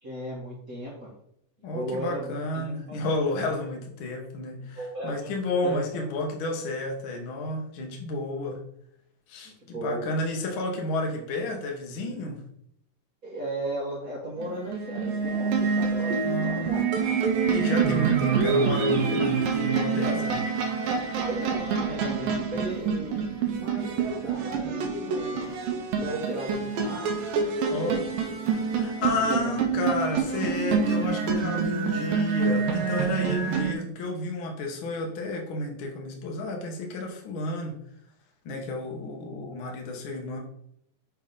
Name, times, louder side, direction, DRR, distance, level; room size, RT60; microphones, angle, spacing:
voice 1, 0.0-1.1 1.7-3.0 4.8-5.3 5.6-6.0 9.6-10.1 13.2-17.2 21.2-25.4 25.9-27.2 27.6-28.0 29.0-29.9 39.4-39.7, right 1 dB, 45° right, -5 dB, 1.1 m, -36 dB
voice 2, 1.6-8.7 9.3-12.4 16.2-16.7 17.5-20.4 27.7-28.0 28.7-37.8 38.4-40.4, left 2 dB, 65° left, 1 dB, 1.2 m, -31 dB
sound 1, 14.4-33.7, right 5 dB, 85° right, 2.5 m, -26 dB
6.9 x 3.5 x 5.4 m, 0.72 s
omnidirectional pair, 3.9 m